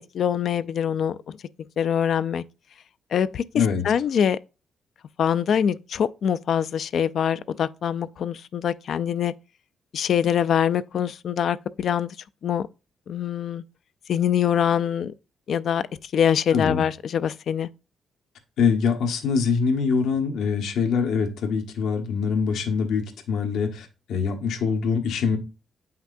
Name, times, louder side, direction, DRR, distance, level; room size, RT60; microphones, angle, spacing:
voice 1, 0.0-1.4 1.8-2.4 3.1-4.4 5.2-9.3 9.9-12.1 12.4-12.7 13.1-13.6 14.1-15.1 15.5-15.8 16.1-17.7, left 8 dB, 60° left, 0.3 m, -24 dB
voice 2, 16.5-16.8 18.6-25.4, left 5 dB, 90° left, 1.3 m, -24 dB
8.4 x 5.8 x 2.6 m
cardioid pair, 150°, 0 cm